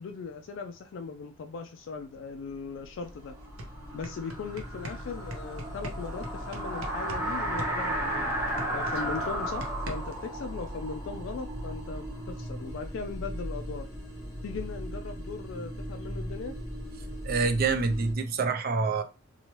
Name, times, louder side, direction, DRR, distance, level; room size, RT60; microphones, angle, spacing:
voice 1, 0.0-3.4 3.9-8.3 8.7-13.9 14.4-16.5, left 4 dB, 60° left, 0.3 m, -39 dB
sound 1, 2.3-18.1, equal, 15° left, 0.9 m, -40 dB
sound 2, 3.0-3.1 3.4-7.3 7.6-10.3, right 1 dB, 85° right, 0.7 m, -41 dB
sound 3, 3.6-12.3, right 1 dB, 15° right, 0.9 m, -34 dB
voice 2, 17.2-19.0, right 4 dB, 45° right, 0.4 m, -26 dB
2.9 x 2.3 x 2.9 m
head